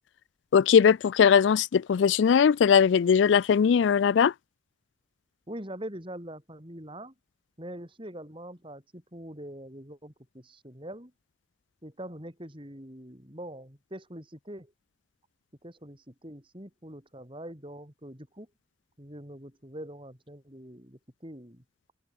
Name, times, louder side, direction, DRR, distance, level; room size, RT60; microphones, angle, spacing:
voice 1, 0.5-4.3, left 7 dB, 75° left, 0.4 m, -20 dB
voice 2, 5.5-7.1 7.6-11.1 11.8-14.7 15.6-18.5 19.0-21.6, right 1 dB, 25° right, 6.0 m, -43 dB
head